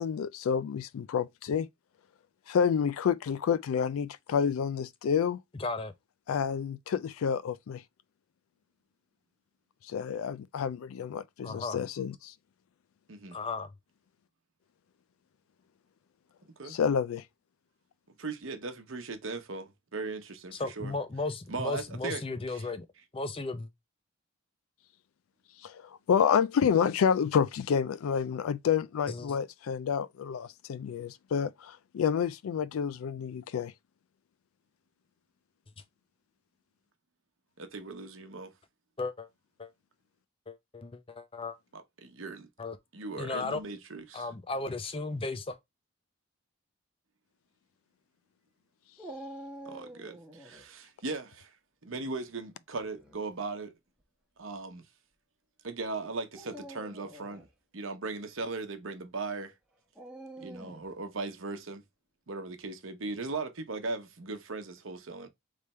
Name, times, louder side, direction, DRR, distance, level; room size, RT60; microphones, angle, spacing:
voice 1, 0.0-1.7 2.5-5.4 6.3-7.8 9.9-12.3 16.7-17.2 25.6-33.7, left 7 dB, 85° left, 0.3 m, -29 dB
voice 2, 5.6-5.9 11.4-11.8 13.3-13.7 20.6-22.9 23.1-23.7 29.1-29.4 39.0-39.3 39.6-39.7 40.5-41.6 42.6-42.8 43.1-43.6 44.1-45.6, left 3 dB, 25° left, 0.5 m, -35 dB
voice 3, 18.2-20.9 21.5-22.2 22.5-22.7 37.6-38.5 41.7-42.5 42.9-44.3 49.6-51.5 51.8-53.7 54.4-54.8 55.6-57.5 57.7-59.5 60.4-61.8 62.3-65.3, right 3 dB, 75° right, 0.9 m, -38 dB
Dog, 49.0-50.6 52.7-53.2 54.0-54.1 56.2-57.5 59.9-60.9, right 1 dB, 5° right, 0.9 m, -46 dB
3.4 x 3.4 x 4.2 m
head